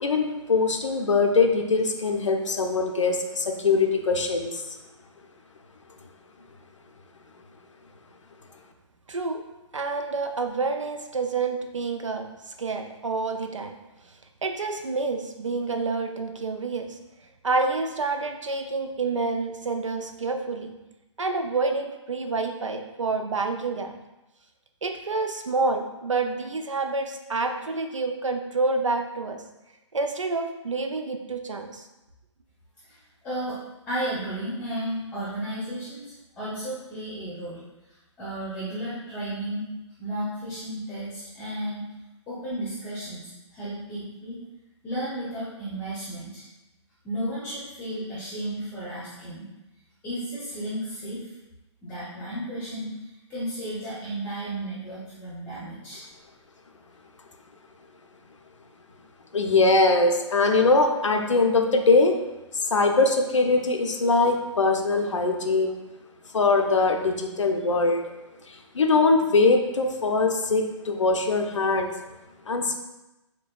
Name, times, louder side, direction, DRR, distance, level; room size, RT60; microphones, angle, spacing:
voice 1, 0.0-4.6 59.3-62.1 62.6-65.8 66.3-68.0 68.5-71.9 72.5-72.7, left 3 dB, 75° left, 3 dB, 0.5 m, -22 dB
voice 2, 9.1-9.4 9.7-13.8 14.4-17.0 17.4-20.7 21.2-23.9 24.8-29.4 29.9-31.9, right 3 dB, 80° right, 5 dB, 0.5 m, -28 dB
voice 3, 33.2-33.6 33.9-37.6 38.2-39.7 40.0-41.9 42.3-43.2 43.5-44.4 44.8-46.4 47.0-49.5 50.0-51.2 51.8-52.9 53.3-56.0, right 1 dB, 10° left, -10 dB, 0.9 m, -33 dB
6.3 x 2.2 x 2.4 m, 1.0 s
figure-of-eight pair, 125°, 16 cm